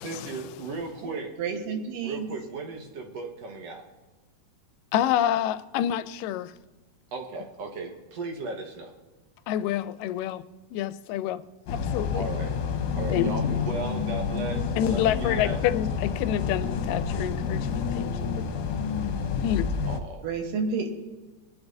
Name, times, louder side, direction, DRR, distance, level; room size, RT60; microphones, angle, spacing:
voice 1, 0.0-1.4 2.0-3.8 7.1-8.9 12.1-12.5 12.9-15.6 19.8-20.3, right 3 dB, 60° right, 2.1 m, -36 dB
voice 2, 1.0-2.3 20.2-20.9, right 5 dB, 85° right, 3.0 m, -30 dB
voice 3, 4.9-6.5 9.5-10.4 10.7-11.4 11.7-12.3 13.1-13.6 14.8-18.1 19.4-19.7, left 11 dB, 90° left, 2.2 m, -28 dB
sound 1, 11.7-20.0, left 6 dB, 75° left, 2.3 m, -29 dB
21.0 x 11.5 x 2.6 m
omnidirectional pair, 3.8 m